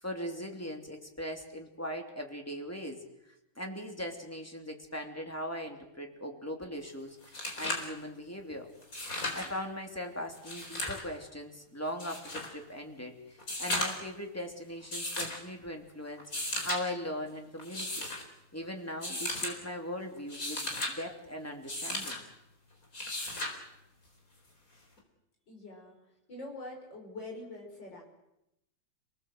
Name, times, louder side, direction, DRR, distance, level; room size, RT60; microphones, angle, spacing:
voice 1, 0.0-3.0 3.6-8.7 9.3-18.1 18.5-22.2, equal, 5° left, 3 dB, 2.9 m, -40 dB
sound 1, 6.9-7.0 7.2-7.9 8.8-9.5 10.3-11.0 12.0-12.5 13.4-14.1 14.9-15.4 16.2-16.8 17.6-18.2 19.0-19.5 20.2-20.9 21.7-22.2 22.9-23.6 25.0-25.1, left 2 dB, 40° left, 4.7 m, -35 dB
voice 2, 25.5-28.0, left 2 dB, 60° left, 0 dB, 6.9 m, -45 dB
29.0 x 19.0 x 7.9 m, 0.87 s
omnidirectional pair, 2.2 m